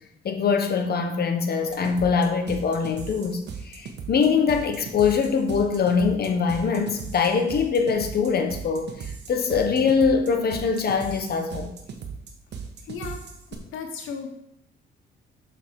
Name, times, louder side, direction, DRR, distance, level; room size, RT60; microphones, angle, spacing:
voice 1, 0.2-11.7, left 5 dB, 55° left, 1.2 m, -23 dB
sound 1, 1.7-13.5, right 6 dB, 60° right, 1.4 m, -38 dB
voice 2, 12.9-13.3 13.7-14.3, left 5 dB, 85° left, 0.9 m, -35 dB
6.5 x 6.4 x 4.8 m
cardioid pair, 90°, 20 cm